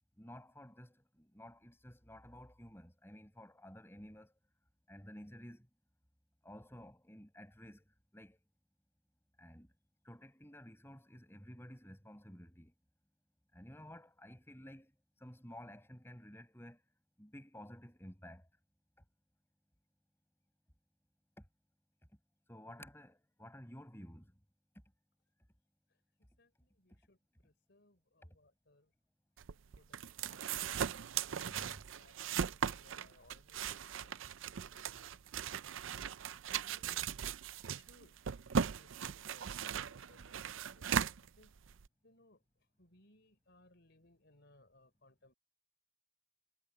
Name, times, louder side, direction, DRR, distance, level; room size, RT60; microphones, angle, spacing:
voice 1, 0.2-4.3 4.9-5.7 6.4-8.4 9.4-9.7 10.0-12.7 13.5-14.9 15.2-16.8 17.2-18.5 21.4-21.5 22.5-24.3 31.5-31.8, equal, 10° left, 5.9 m, -53 dB
voice 2, 26.2-28.9 29.8-30.8 32.0-34.3 34.7-35.2 35.8-36.2 36.5-37.0 37.5-38.2 38.8-41.6 42.0-45.3, left 2 dB, 55° left, 4.2 m, -67 dB
sound 1, 29.4-41.9, right 7 dB, 70° right, 0.5 m, -38 dB
head